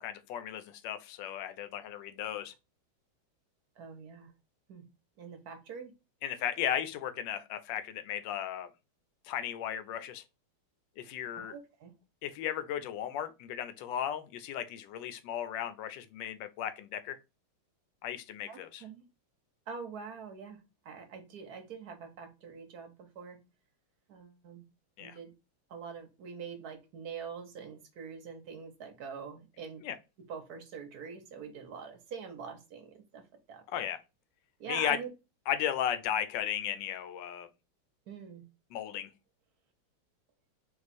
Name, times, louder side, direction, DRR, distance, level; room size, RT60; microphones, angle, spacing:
voice 1, 0.0-2.5 6.2-8.7 9.2-10.2 11.0-11.6 12.2-17.2 18.0-18.8 25.0-25.2 29.8-30.0 33.7-34.0 34.7-35.0 35.5-37.5 38.7-39.1, left 10 dB, 75° left, 1.1 m, -35 dB
voice 2, 3.8-4.3 4.7-4.8 5.2-5.9 11.3-11.9 18.5-19.0 19.7-20.6 20.8-23.4 24.1-24.6 25.0-25.3 25.7-29.8 30.3-32.9 33.1-33.2 33.5-33.8 34.6-35.1 38.1-38.4, right 6 dB, 60° right, 1.1 m, -44 dB
4.4 x 2.4 x 4.1 m
omnidirectional pair, 2.3 m